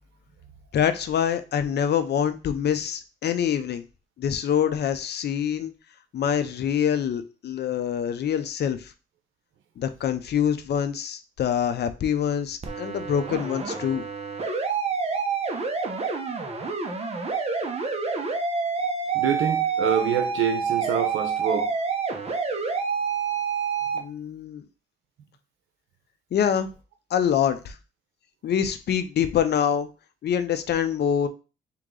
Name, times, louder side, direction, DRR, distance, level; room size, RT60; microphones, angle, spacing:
voice 1, 0.7-3.8 4.2-5.7 6.1-8.9 9.8-14.0 23.9-24.6 26.3-26.7 27.1-27.8 28.4-29.9 30.2-31.3, left 8 dB, 60° left, 0.6 m, -25 dB
sound 1, 12.6-24.0, right 5 dB, 30° right, 0.9 m, -28 dB
voice 2, 19.1-21.7, right 8 dB, 85° right, 0.8 m, -26 dB
3.7 x 3.0 x 3.8 m
cardioid pair, 90°, 20 cm